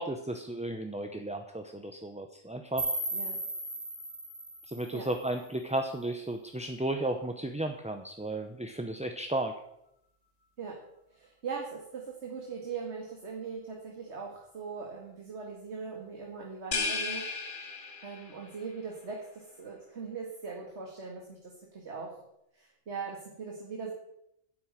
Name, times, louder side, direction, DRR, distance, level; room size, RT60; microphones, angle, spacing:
voice 1, 0.0-2.9 4.7-9.5, right 1 dB, 5° right, 5 dB, 0.6 m, -34 dB
sound 1, 2.8-5.8, right 1 dB, 35° right, 2.4 m, -36 dB
voice 2, 11.1-17.2 18.0-22.2 22.5-23.9, right 5 dB, 70° right, 0 dB, 2.2 m, -40 dB
sound 2, 16.7-18.4, left 4 dB, 45° left, 1.3 m, -34 dB
10.5 x 8.0 x 8.9 m, 0.79 s
omnidirectional pair, 1.2 m